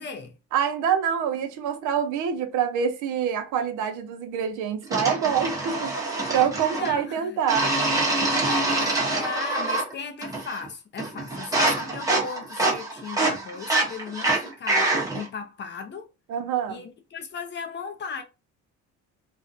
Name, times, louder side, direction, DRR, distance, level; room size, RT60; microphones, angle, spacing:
voice 1, 0.0-0.3 6.7-7.4 8.3-16.1 16.7-18.2, left 5 dB, 40° left, 0.4 m, -37 dB
voice 2, 0.5-7.7 16.3-16.8, right 8 dB, 75° right, 0.6 m, -26 dB
sound 1, 4.9-6.9 7.5-9.9 10.2-10.7 11.0-15.3, right 2 dB, 10° right, 0.8 m, -25 dB
2.4 x 2.1 x 2.5 m
cardioid pair, 135°, 30 cm